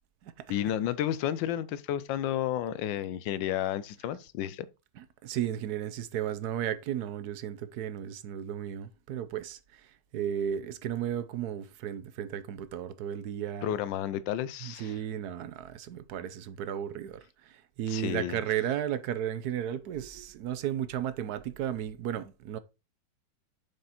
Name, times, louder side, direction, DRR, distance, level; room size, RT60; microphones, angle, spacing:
voice 1, 0.5-4.7 13.6-15.0 17.9-18.4, left 11 dB, 90° left, 1.3 m, -31 dB
voice 2, 5.0-9.6 10.1-13.7 14.6-17.2 17.5-17.6 17.8-22.6, right 10 dB, 65° right, 1.1 m, -34 dB
7.6 x 5.3 x 4.2 m
omnidirectional pair, 2.0 m